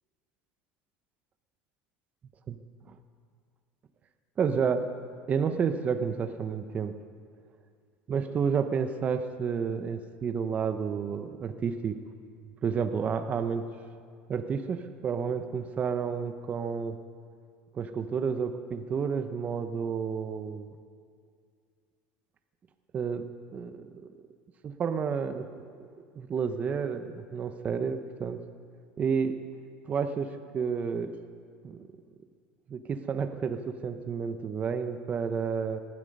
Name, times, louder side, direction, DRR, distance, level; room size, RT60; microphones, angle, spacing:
voice 1, 4.4-4.8 5.3-7.0 8.1-12.0 12.6-13.6 14.3-17.0 17.7-20.7 22.9-23.3 23.5-24.1 24.6-25.6 26.2-28.4 29.0-29.4 29.9-31.1 31.6-31.8 32.7-35.8, right 6 dB, 30° right, 8 dB, 0.9 m, -30 dB
19.0 x 12.5 x 5.4 m, 2.2 s
supercardioid pair, 120°, 5 cm